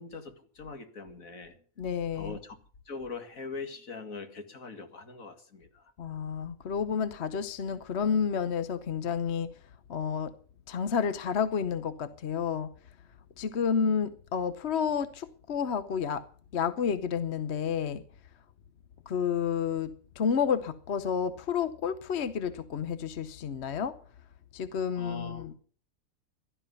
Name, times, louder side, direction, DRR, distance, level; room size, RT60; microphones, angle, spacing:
voice 1, 0.0-1.6 2.1-2.6 2.9-5.9 25.0-25.5, left 4 dB, 75° left, 2.4 m, -42 dB
voice 2, 1.8-2.4 6.0-9.5 9.9-10.3 10.7-12.7 13.4-16.2 16.5-18.0 19.1-23.9 24.5-25.6, left 7 dB, 55° left, 1.1 m, -30 dB
17.0 x 12.5 x 5.5 m
omnidirectional pair, 1.4 m